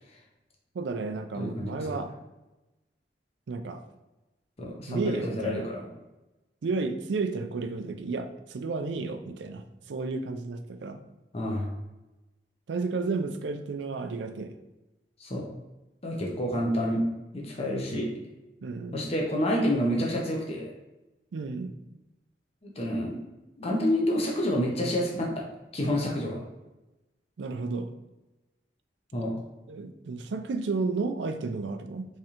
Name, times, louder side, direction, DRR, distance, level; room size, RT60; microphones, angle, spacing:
voice 1, 0.7-2.1 3.5-3.8 4.9-5.7 6.6-11.0 12.7-14.6 17.9-18.1 18.6-19.0 21.3-21.8 27.4-27.9 29.7-32.1, right 4 dB, 85° right, 8 dB, 0.4 m, -32 dB
voice 2, 1.4-1.8 4.6-5.9 11.3-11.7 15.2-15.5 16.0-17.0 17.3-18.1 18.9-20.7 22.6-23.2 23.6-25.4 25.7-26.4 29.1-29.4, equal, 35° left, -1 dB, 0.7 m, -28 dB
3.6 x 3.2 x 2.8 m, 1.0 s
head